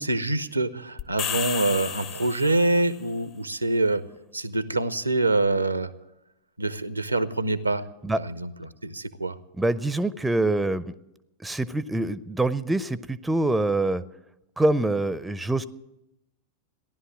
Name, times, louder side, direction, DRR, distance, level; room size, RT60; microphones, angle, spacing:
voice 1, 0.0-4.0 4.3-5.9 6.6-7.8 8.2-8.5 8.8-9.4, right 2 dB, 85° right, 15 dB, 0.7 m, -25 dB
sound 1, 1.0-2.9, left 8 dB, 40° left, 1.0 m, -32 dB
voice 2, 9.5-10.9 11.4-14.0 14.6-15.6, right 2 dB, 5° right, 16 dB, 0.6 m, -25 dB
16.0 x 11.0 x 7.5 m, 0.90 s
figure-of-eight pair, 90°, 0 cm